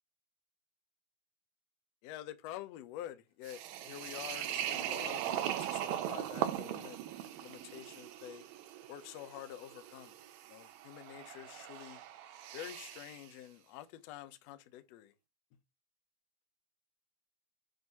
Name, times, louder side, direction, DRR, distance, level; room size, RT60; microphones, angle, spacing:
voice 1, 2.0-7.0 7.4-8.4 8.9-10.1 10.5-12.0 12.5-15.1, left 12 dB, 80° left, 1.5 m, -48 dB
sound 1, 3.4-13.2, right 11 dB, 80° right, 2.7 m, -40 dB
7.9 x 2.7 x 5.9 m
omnidirectional pair, 4.1 m